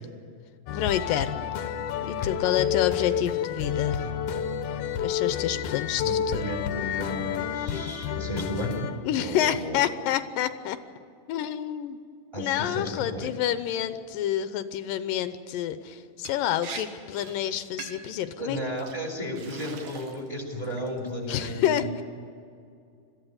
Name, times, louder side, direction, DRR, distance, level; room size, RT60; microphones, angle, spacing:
voice 1, 0.7-1.4 2.0-4.1 5.0-6.4 9.0-10.8 11.3-12.0 12.4-18.6 21.3-22.0, left 11 dB, 90° left, 11 dB, 2.6 m, -28 dB
sound 1, 0.7-9.0, left 8 dB, 70° left, 2.1 m, -30 dB
voice 2, 6.0-8.9 9.2-9.8 12.3-13.3 18.4-22.0, left 1 dB, 10° right, 2 dB, 3.4 m, -33 dB
Liquid, 16.3-16.4 16.6-16.8 17.1-17.4 17.8-18.1 18.8-18.9 19.4-20.3 20.6-21.1, right 6 dB, 70° right, 3.1 m, -41 dB
21.5 x 14.0 x 9.8 m, 2.4 s
omnidirectional pair, 3.9 m